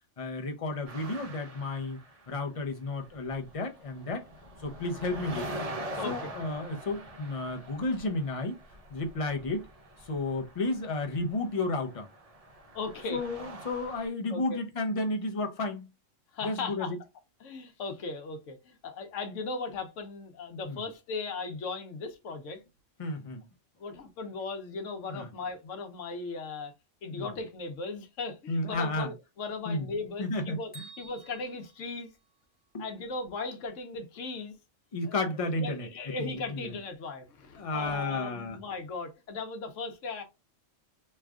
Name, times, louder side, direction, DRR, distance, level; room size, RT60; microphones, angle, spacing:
voice 1, 0.2-2.0 2.3-4.3 4.6-5.5 6.0-8.6 8.9-9.7 10.0-12.1 13.1-15.9 16.4-17.0 20.7-20.8 23.0-23.4 25.1-25.3 27.1-27.3 28.5-29.1 29.7-29.9 30.2-30.8 32.7-32.9 34.9-36.8 37.6-38.6, left 2 dB, 40° left, 0.5 m, -32 dB
sound 1, 0.8-2.7 2.9-14.1, right 1 dB, 40° right, 0.6 m, -44 dB
voice 2, 6.0-6.3 12.7-13.2 14.3-14.6 16.3-16.9 17.4-22.6 23.8-26.7 27.0-30.7 31.0-32.1 32.8-34.6 35.0-35.1 35.6-40.2, left 3 dB, 75° left, 1.1 m, -37 dB
Bell, 30.7-32.8, right 4 dB, 10° left, 0.8 m, -52 dB
3.2 x 2.4 x 3.5 m
omnidirectional pair, 1.3 m